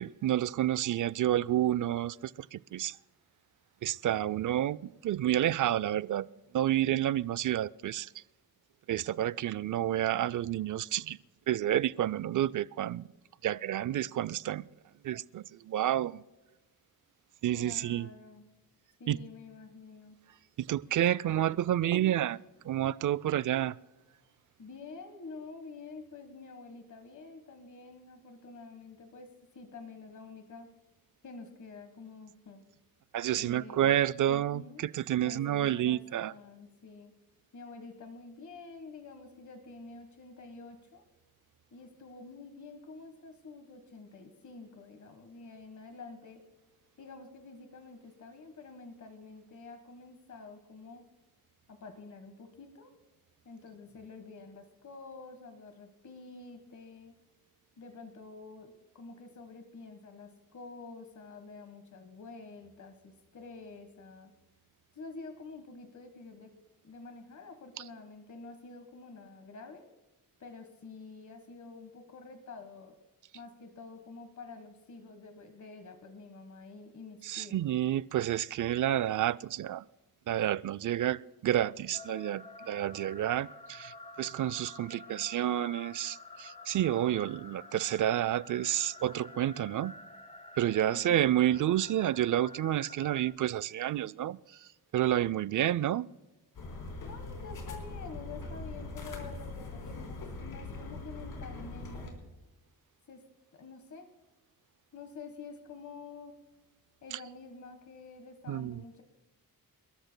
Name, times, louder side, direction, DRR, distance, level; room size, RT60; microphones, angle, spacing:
voice 1, 0.0-3.0 3.8-6.3 6.5-8.1 8.9-11.2 11.5-13.1 13.4-14.7 15.0-16.2 17.4-18.1 19.1-19.2 20.6-23.8 33.1-36.3 77.2-79.8 80.3-89.9 90.6-96.1 108.5-108.8, right 12 dB, 60° right, 0.4 m, -30 dB
voice 2, 17.6-18.4 19.0-20.2 24.6-30.7 31.2-32.6 33.3-34.8 35.2-37.1 37.5-41.0 41.7-46.4 47.0-51.0 51.7-52.9 53.4-57.1 57.8-64.3 64.9-66.5 66.8-69.9 70.4-72.9 73.3-77.6 90.9-91.2 97.0-102.2 103.1-103.2 103.5-104.1 104.9-106.4 107.0-109.0, left 4 dB, 50° left, 1.5 m, -48 dB
sound 1, 81.9-93.3, left 3 dB, 20° left, 1.3 m, -49 dB
sound 2, 96.5-102.1, left 2 dB, 80° left, 3.6 m, -42 dB
28.5 x 13.0 x 2.2 m
cardioid pair, 100°, 36 cm